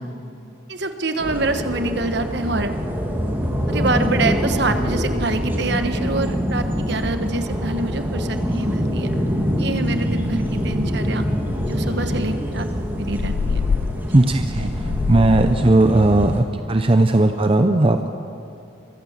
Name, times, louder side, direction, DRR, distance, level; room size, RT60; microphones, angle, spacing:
voice 1, 0.7-2.7 3.7-9.1 9.6-11.2 11.7-12.7 13.0-13.6, right 2 dB, 60° right, 8 dB, 1.3 m, -26 dB
sound 1, 1.2-16.4, equal, 10° right, 1.9 m, -24 dB
sound 2, 8.9-9.0 9.3-9.6 9.9-10.0 10.3-11.0 11.5-15.7, left 5 dB, 80° left, 0.4 m, -27 dB
voice 2, 14.1-18.1, right 2 dB, 30° right, 7 dB, 0.7 m, -17 dB
23.5 x 15.0 x 7.3 m, 2.7 s
head